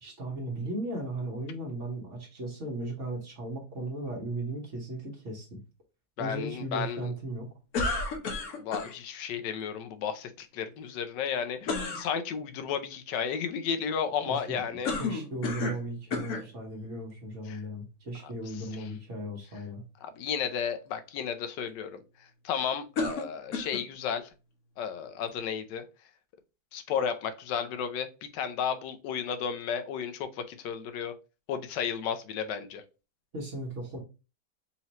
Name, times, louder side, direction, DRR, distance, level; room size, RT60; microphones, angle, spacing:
voice 1, 0.0-5.6 6.2-7.5 14.2-19.8 33.3-34.0, right 1 dB, 45° right, 1.5 m, -36 dB
voice 2, 6.2-7.1 8.5-14.9 17.5-17.6 20.0-22.0 22.4-24.3 24.8-25.9 26.7-28.1 28.3-31.1 31.5-32.8, left 7 dB, 85° left, 1.3 m, -33 dB
sound 1, 7.7-8.9 11.6-12.1 14.8-15.8 16.1-16.5 17.3-17.4 23.0-23.9, left 3 dB, 60° left, 1.2 m, -31 dB
4.3 x 2.9 x 2.8 m
omnidirectional pair, 1.8 m